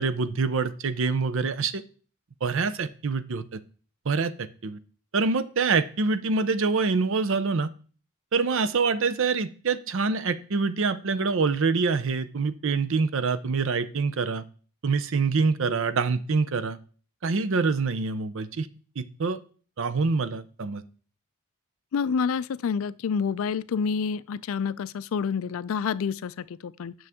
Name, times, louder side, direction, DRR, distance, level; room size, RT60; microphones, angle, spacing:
voice 1, 0.0-1.8 2.4-3.6 4.1-4.8 5.1-7.7 8.3-14.4 14.8-16.8 17.2-18.7 19.0-19.4 19.8-20.8, right 4 dB, 60° right, 0.6 m, -25 dB
voice 2, 21.9-26.9, left 6 dB, 65° left, 0.3 m, -28 dB
9.4 x 6.2 x 3.5 m
head